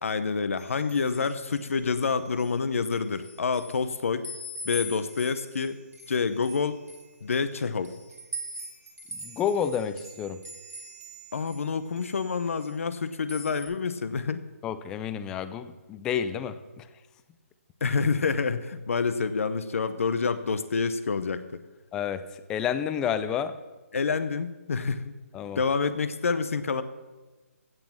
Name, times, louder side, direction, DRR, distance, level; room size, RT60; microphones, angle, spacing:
voice 1, 0.0-4.3 4.6-5.8 6.1-6.8 7.2-7.9 11.3-14.4 17.8-21.6 23.9-25.1 25.6-26.8, left 5 dB, 60° left, 13 dB, 0.8 m, -28 dB
sound 1, 0.6-2.5 2.8-3.9 4.2-11.7 12.0-13.0 13.3-13.6, equal, 85° right, 2.6 m, -43 dB
voice 2, 9.1-10.4 14.6-16.9 21.9-22.2 22.5-23.5 25.3-25.6, left 8 dB, 10° left, 13 dB, 0.3 m, -30 dB
16.0 x 6.0 x 7.2 m, 1.2 s
hypercardioid pair, 160°, 8 cm